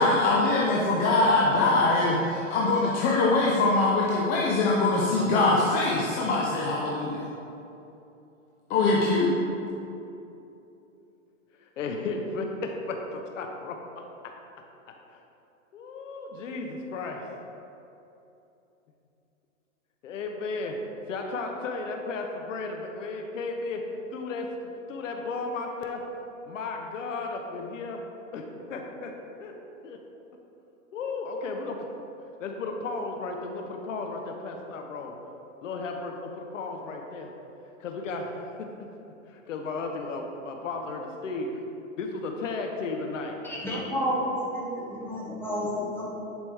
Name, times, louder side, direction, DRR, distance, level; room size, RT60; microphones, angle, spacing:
voice 1, 0.0-7.3 8.7-9.4, left 2 dB, 20° left, -4 dB, 0.7 m, -23 dB
voice 2, 11.6-14.3 15.1-15.2 15.7-17.3 20.0-20.8 21.1-23.8 24.1-26.0 26.4-28.0 28.3-29.1 29.4-29.5 29.8-30.0 30.9-31.9 32.4-35.2 35.6-37.3 37.8-38.9 39.3-41.6 42.0-43.4 45.6-45.7, left 3 dB, 65° left, 3 dB, 1.0 m, -34 dB
voice 3, 43.4-46.0, equal, 5° left, -6 dB, 1.6 m, -30 dB
10.5 x 5.1 x 3.6 m, 2.9 s
hypercardioid pair, 135°, 40 cm